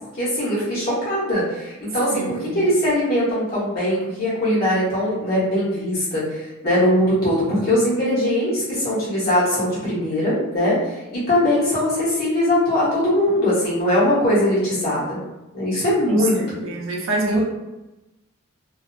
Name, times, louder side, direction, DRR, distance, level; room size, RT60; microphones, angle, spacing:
voice 1, 0.2-2.2 2.5-10.8 11.1-15.2 15.5-16.7 17.2-17.4, left 1 dB, 45° left, -10 dB, 1.1 m, -21 dB
voice 2, 2.1-2.7 16.1-17.4, right 2 dB, 75° right, -2 dB, 0.6 m, -27 dB
2.6 x 2.1 x 2.5 m, 1.0 s
head